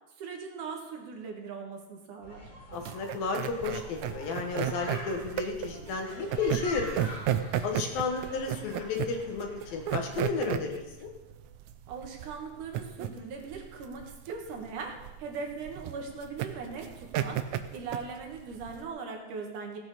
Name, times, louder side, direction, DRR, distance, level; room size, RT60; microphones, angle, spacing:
voice 1, 0.2-2.5 11.9-17.4 17.7-19.8, right 5 dB, 65° right, 1 dB, 2.8 m, -40 dB
sound 1, 2.2-10.3, left 1 dB, 45° left, 4.3 m, -46 dB
voice 2, 2.7-7.1 7.6-11.1, left 4 dB, 85° left, 3 dB, 3.2 m, -33 dB
sound 2, 2.7-18.9, right 11 dB, 85° right, 1.6 m, -34 dB
16.5 x 8.8 x 4.1 m, 1.0 s
omnidirectional pair, 4.0 m